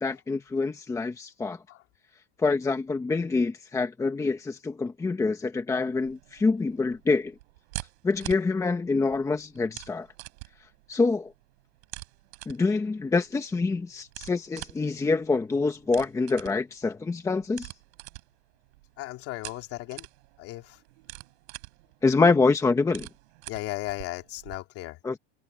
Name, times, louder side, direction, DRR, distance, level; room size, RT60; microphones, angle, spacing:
voice 1, 0.0-1.6 2.4-7.3 8.0-10.1 10.9-11.3 12.5-17.7 22.0-23.1 25.0-25.2, left 3 dB, 10° left, 1.2 m, -26 dB
sound 1, 6.0-24.6, right 22 dB, 80° right, 5.7 m, -46 dB
voice 2, 19.0-20.1 20.4-20.8 23.5-25.0, left 18 dB, 45° left, 2.8 m, -36 dB
cardioid pair, 170°, 33 cm